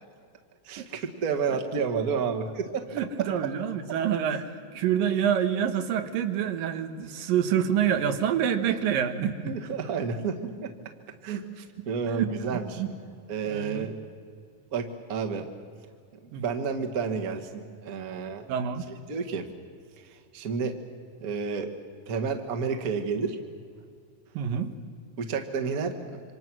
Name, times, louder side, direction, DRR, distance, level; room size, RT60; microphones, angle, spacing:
voice 1, 0.7-2.9 3.2-3.3 4.3-4.4 8.7-8.8 9.4-10.7 11.2-12.8 13.3-13.9 14.7-15.5 16.3-18.4 19.1-19.5 20.3-20.8 21.2-21.7 22.1-23.4 25.2-26.2, right 5 dB, 40° right, 4 dB, 1.4 m, -30 dB
voice 2, 2.9-4.4 4.7-9.5 12.1-12.3 12.8-12.9 13.5-13.9 16.3-16.4 18.5-18.8 24.3-24.7, right 9 dB, 85° right, 7 dB, 3.0 m, -27 dB
27.5 x 25.5 x 6.2 m, 2.2 s
omnidirectional pair, 3.9 m